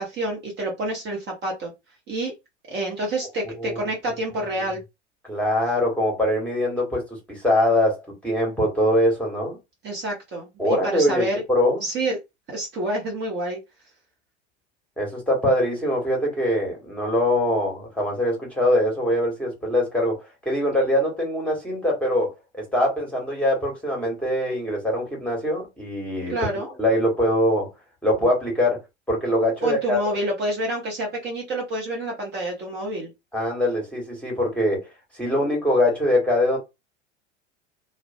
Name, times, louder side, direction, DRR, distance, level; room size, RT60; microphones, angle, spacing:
voice 1, 0.0-1.7 2.1-2.3 2.7-4.8 9.8-11.4 11.8-12.2 12.5-13.6 26.3-26.7 29.6-33.1, right 1 dB, 30° right, 0.9 m, -28 dB
voice 2, 5.3-9.6 10.6-11.8 15.0-26.3 26.8-27.7 28.0-28.8 29.1-30.0 33.3-34.8 35.2-36.6, left 1 dB, 5° left, 1.2 m, -23 dB
2.4 x 2.1 x 2.5 m
figure-of-eight pair, 85°, 35 cm